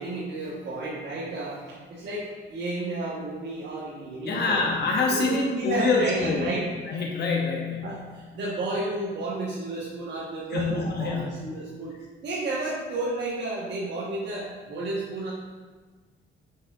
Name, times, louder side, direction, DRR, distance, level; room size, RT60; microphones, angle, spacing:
voice 1, 0.0-4.7 5.1-6.6 7.8-12.0 12.2-15.3, right 2 dB, 60° right, -7 dB, 1.6 m, -32 dB
voice 2, 4.3-6.5 6.9-7.8 10.5-11.4, left 3 dB, 55° left, -1 dB, 1.0 m, -25 dB
7.6 x 6.5 x 2.7 m, 1.4 s
cardioid pair, 90°, 20 cm